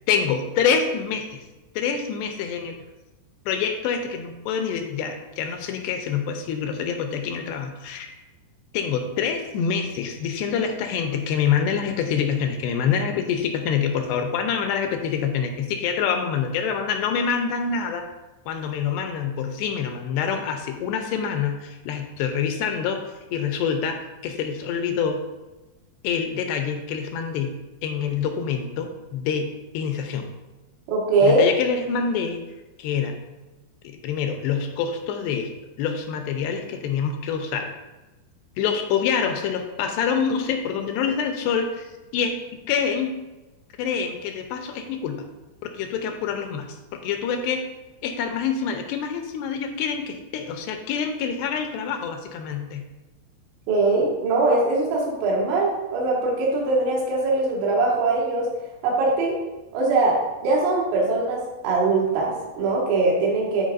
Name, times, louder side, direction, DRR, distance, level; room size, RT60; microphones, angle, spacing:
voice 1, 0.1-1.4 1.8-2.8 3.5-8.1 8.7-18.1 18.5-23.0 23.3-25.2 26.0-27.5 27.8-30.3 31.2-32.4 32.8-33.2 33.8-35.5 35.8-37.7 38.6-42.4 42.7-43.1 43.8-45.3 45.7-47.6 48.0-52.9, left 7 dB, 80° left, 5 dB, 2.7 m, -26 dB
voice 2, 30.9-31.4 53.7-58.5 58.8-59.4 59.7-60.2 60.4-63.6, right 3 dB, 80° right, -3 dB, 3.9 m, -21 dB
13.0 x 4.8 x 2.6 m, 1.1 s
omnidirectional pair, 5.1 m